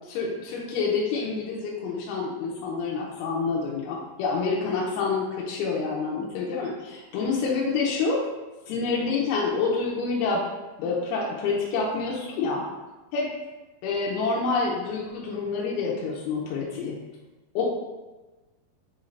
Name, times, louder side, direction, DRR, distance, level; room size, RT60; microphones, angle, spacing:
voice 1, 0.2-8.2 8.7-10.4 10.8-12.6 13.1-13.3 13.8-17.0 17.6-17.7, left 4 dB, 85° left, -3 dB, 2.5 m, -27 dB
6.2 x 2.5 x 3.2 m, 1.2 s
omnidirectional pair, 4.5 m